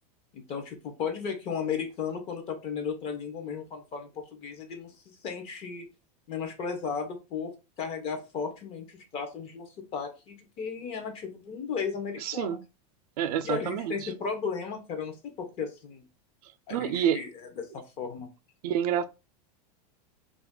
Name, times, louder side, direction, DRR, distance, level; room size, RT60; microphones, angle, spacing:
voice 1, 0.3-5.9 6.3-12.6 13.4-16.0 16.7-17.3 17.6-18.3, left 6 dB, 30° left, 0.6 m, -35 dB
voice 2, 12.2-12.6 13.2-14.1 16.7-17.2 18.6-19.0, right 9 dB, 70° right, 0.4 m, -28 dB
2.4 x 2.3 x 3.5 m
supercardioid pair, 160°, 21 cm